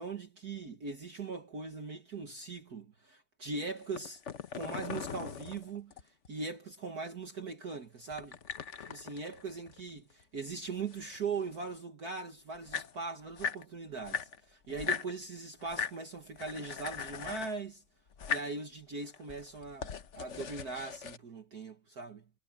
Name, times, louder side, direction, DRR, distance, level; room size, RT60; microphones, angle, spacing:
voice 1, 0.0-4.2 4.5-5.9 6.3-8.4 8.9-17.8 18.3-22.2, right 4 dB, 45° right, 1.9 m, -40 dB
sound 1, 3.8-6.3 8.1-10.2 10.5-11.7 12.3-12.4 12.5-13.6 14.0-15.1 15.6-16.0 16.4-17.6 18.1-18.6 19.1-21.2, left 6 dB, 50° left, 0.9 m, -39 dB
omnidirectional pair, 2.4 m